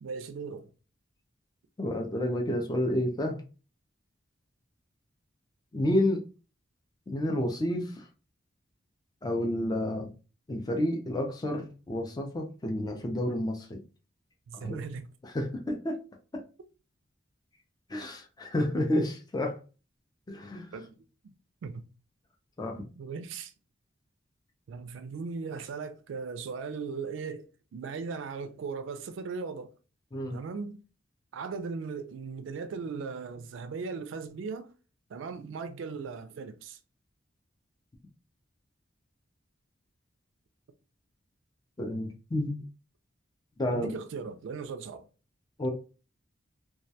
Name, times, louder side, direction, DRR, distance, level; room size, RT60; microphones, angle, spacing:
voice 1, 0.0-0.7 14.5-15.1 20.7-21.0 21.6-21.9 22.8-23.5 24.7-29.7 30.3-30.8 31.3-34.7 35.1-36.8 43.7-45.1, right 5 dB, 75° right, 0.3 m, -38 dB
voice 2, 1.8-3.4 5.7-6.2 7.1-8.1 9.2-10.1 10.5-13.8 14.5-14.8 15.2-16.0 17.9-19.6 20.3-20.7 22.6-22.8 30.1-30.4 41.8-42.5 43.6-43.9 45.6-45.7, left 1 dB, 20° left, 0.4 m, -30 dB
2.2 x 2.1 x 2.7 m
head